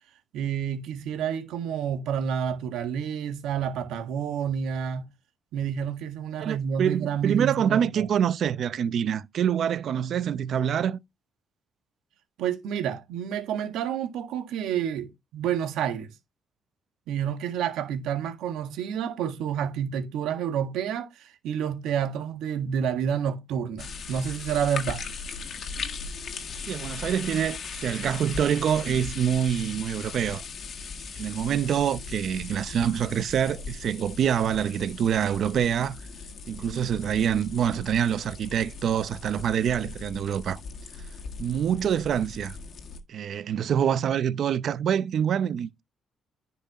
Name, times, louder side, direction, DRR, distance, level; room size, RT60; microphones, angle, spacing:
voice 1, 0.3-5.1 5.5-8.1 12.4-16.1 17.1-25.0, right 8 dB, 90° right, 1.7 m, -29 dB
voice 2, 6.4-11.0 26.7-30.4 31.1-36.0 36.5-40.6 41.4-42.6 43.1-45.8, right 8 dB, 65° right, 0.7 m, -26 dB
sound 1, 23.8-43.0, left 5 dB, 60° left, 1.7 m, -38 dB
10.0 x 5.7 x 3.0 m
cardioid pair, 90°, 0 cm